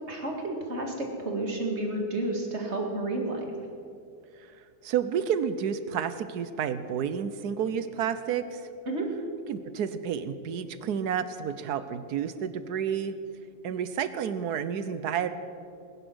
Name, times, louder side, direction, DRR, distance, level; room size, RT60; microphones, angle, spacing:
voice 1, 0.1-3.4 8.9-9.1, right 2 dB, 40° right, 1 dB, 2.3 m, -31 dB
voice 2, 4.8-8.7 9.5-13.2 13.6-15.3, right 8 dB, 75° right, 12 dB, 1.3 m, -30 dB
20.5 x 10.5 x 6.3 m, 2.4 s
omnidirectional pair, 1.8 m